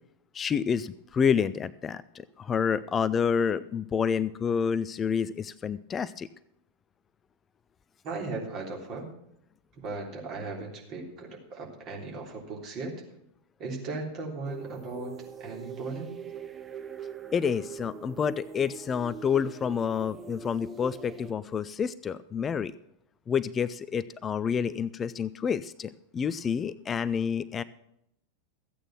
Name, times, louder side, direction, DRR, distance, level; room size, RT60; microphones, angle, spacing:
voice 1, 0.3-6.3 17.3-22.7 23.3-27.6, left 7 dB, 20° left, 16 dB, 0.4 m, -28 dB
voice 2, 8.0-9.1 9.8-12.9 13.6-15.1 15.4-16.2, right 3 dB, 35° right, 0 dB, 3.5 m, -37 dB
sound 1, 14.5-21.3, right 6 dB, 20° right, 0.8 m, -42 dB
14.0 x 8.9 x 6.0 m, 0.77 s
figure-of-eight pair, 90°, 0 cm